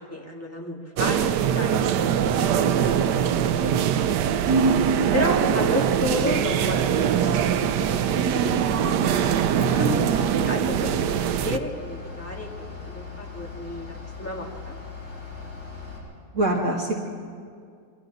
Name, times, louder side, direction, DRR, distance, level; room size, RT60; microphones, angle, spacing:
voice 1, 0.1-3.4 3.9-4.0 5.1-8.0 9.7-9.8 10.5-11.0 11.4-14.7, left 1 dB, 10° left, -1 dB, 2.0 m, -32 dB
sound 1, 1.0-11.6, right 8 dB, 85° right, 1.3 m, -22 dB
Bus / Idling, 6.0-16.0, left 4 dB, 65° left, 8.1 m, -39 dB
voice 2, 9.6-10.3 16.3-17.0, right 1 dB, 50° right, -1 dB, 2.1 m, -25 dB
27.5 x 23.5 x 4.0 m, 2.1 s
omnidirectional pair, 1.8 m